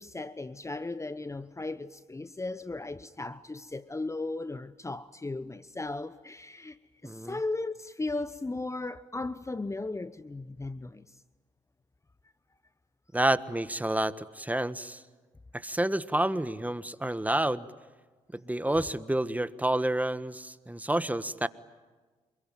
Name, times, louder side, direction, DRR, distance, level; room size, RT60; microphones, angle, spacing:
voice 1, 0.0-6.8 7.0-11.0, left 2 dB, 20° left, 1.0 m, -36 dB
voice 2, 7.0-7.4 13.1-15.0 15.5-17.7 18.3-21.5, right 1 dB, 10° right, 1.4 m, -29 dB
27.5 x 22.5 x 9.2 m
supercardioid pair, 55°, 15 cm